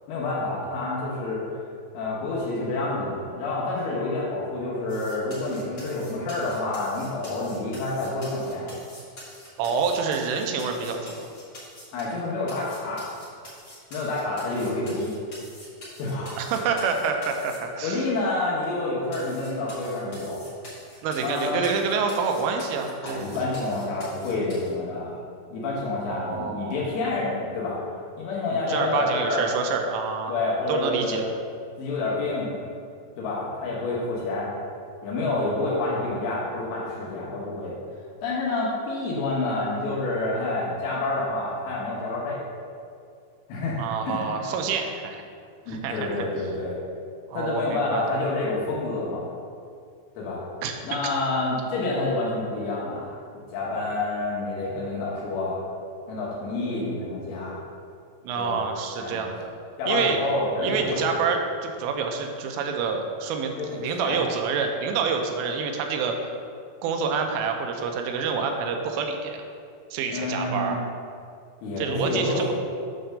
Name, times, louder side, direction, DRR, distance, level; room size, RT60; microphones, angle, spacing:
voice 1, 0.1-1.4 1.9-8.7 11.9-13.0 13.9-15.1 16.0-16.3 17.8-20.4 21.2-21.6 23.0-25.1 25.5-27.8 28.2-29.4 30.3-31.3 31.8-32.6 33.2-34.5 35.0-37.8 38.2-42.4 43.5-44.4 45.7-46.8 47.3-49.3 50.2-50.4 50.8-55.6 56.1-57.6 58.4-58.6 59.0-59.2 59.8-61.2 63.6-64.2 70.1-70.8 71.6-72.5, left 2 dB, 80° left, -6 dB, 3.6 m, -28 dB
sound 1, 4.9-12.2 12.5-17.6 18.1-18.2 18.6-18.7 19.1-24.7, left 1 dB, 55° left, 1.1 m, -45 dB
voice 2, 9.6-11.3 16.4-18.1 21.0-23.3 23.5-23.7 26.0-26.8 28.5-30.4 30.7-31.2 35.3-36.2 43.8-45.2 45.7-46.3 47.3-48.2 50.6-50.7 58.2-59.5 59.9-60.2 60.6-66.2 66.8-69.4 69.9-70.8 71.8-72.5, right 5 dB, 90° right, 3 dB, 3.3 m, -27 dB
8.6 x 3.4 x 6.6 m, 2.3 s
omnidirectional pair, 5.5 m